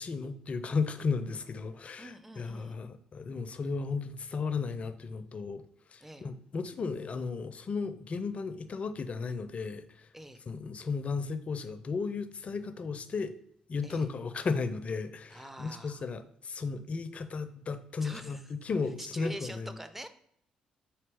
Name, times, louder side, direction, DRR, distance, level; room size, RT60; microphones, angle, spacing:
voice 1, 0.0-5.6 5.9-10.1 10.5-13.3 13.7-19.8, left 4 dB, 45° left, 11 dB, 0.4 m, -35 dB
voice 2, 2.0-2.8 6.0-6.3 10.1-10.4 13.8-14.1 15.3-16.0 18.0-18.5 19.0-20.1, equal, 10° right, 9 dB, 0.5 m, -44 dB
4.0 x 2.8 x 3.5 m, 0.68 s
hypercardioid pair, 45°, 3 cm